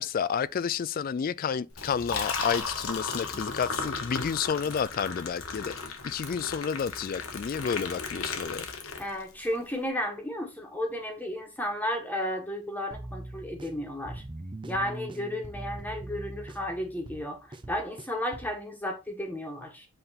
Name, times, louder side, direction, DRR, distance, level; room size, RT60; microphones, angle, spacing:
voice 1, 0.0-8.7, left 7 dB, 40° left, 0.3 m, -30 dB
Liquid, 1.7-9.4, left 4 dB, 75° left, 1.3 m, -35 dB
voice 2, 9.0-14.2 14.6-19.9, left 1 dB, 10° left, 1.5 m, -33 dB
sound 1, 12.9-18.6, right 1 dB, 20° right, 0.6 m, -42 dB
7.8 x 3.8 x 4.2 m
head